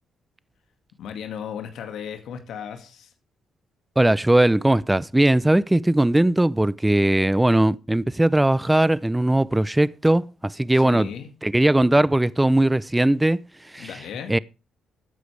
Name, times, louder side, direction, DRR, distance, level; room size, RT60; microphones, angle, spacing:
voice 1, 1.0-3.1 10.7-11.3 13.8-14.4, left 8 dB, 75° left, 2.1 m, -35 dB
voice 2, 4.0-11.1 11.4-13.4 13.7-13.9 14.3-14.4, right 1 dB, 10° right, 0.6 m, -19 dB
15.0 x 9.3 x 3.4 m
supercardioid pair, 65°, 0 cm